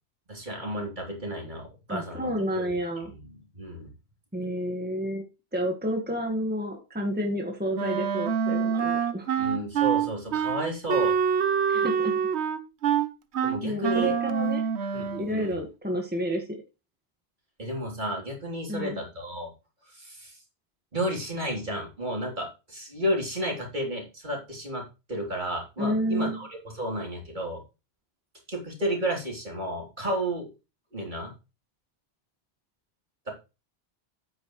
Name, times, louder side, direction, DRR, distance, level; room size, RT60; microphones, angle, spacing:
voice 1, 0.3-2.6 3.0-3.9 9.4-11.1 13.4-14.1 14.9-15.6 17.6-19.5 19.9-20.3 20.9-27.6 28.5-30.5 30.9-31.3, right 1 dB, 45° right, -1 dB, 3.5 m, -32 dB
voice 2, 1.9-3.1 4.3-5.2 5.5-9.3 11.7-12.2 13.6-14.7 15.1-16.4 18.7-19.0 25.8-26.4, equal, 10° right, 2 dB, 1.5 m, -30 dB
Wind instrument woodwind instrument, 7.7-15.3, right 7 dB, 90° right, 1.1 m, -26 dB
9.3 x 8.8 x 3.1 m, 0.28 s
omnidirectional pair, 1.1 m